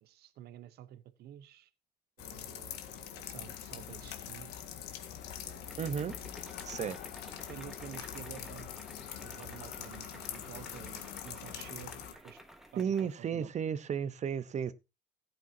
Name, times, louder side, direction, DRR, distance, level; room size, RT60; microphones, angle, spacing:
voice 1, 0.0-1.7 2.2-4.6 5.4-5.8 7.5-8.8 9.2-12.4 12.7-13.5, right 12 dB, 70° right, 0.9 m, -50 dB
sound 1, 2.2-12.1, left 10 dB, 85° left, 1.8 m, -44 dB
sound 2, 4.4-13.2, equal, ahead, 1.6 m, -54 dB
voice 2, 5.8-6.1 6.6-7.0 12.8-14.7, right 7 dB, 45° right, 1.0 m, -33 dB
15.0 x 9.3 x 2.8 m
cardioid pair, 110°, 17 cm